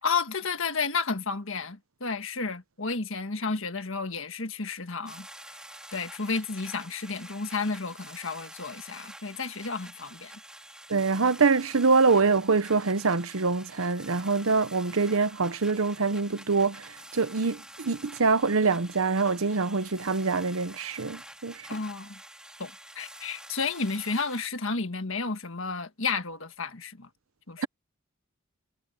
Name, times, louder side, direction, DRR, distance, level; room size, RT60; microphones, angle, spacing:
voice 1, 0.0-5.3 5.9-10.3 21.7-22.2 22.6-27.1 27.5-27.7, left 4 dB, 65° left, 1.6 m, -32 dB
sound 1, 5.1-24.5, right 1 dB, 5° right, 3.3 m, -48 dB
voice 2, 10.9-21.7, right 4 dB, 70° right, 0.8 m, -25 dB
head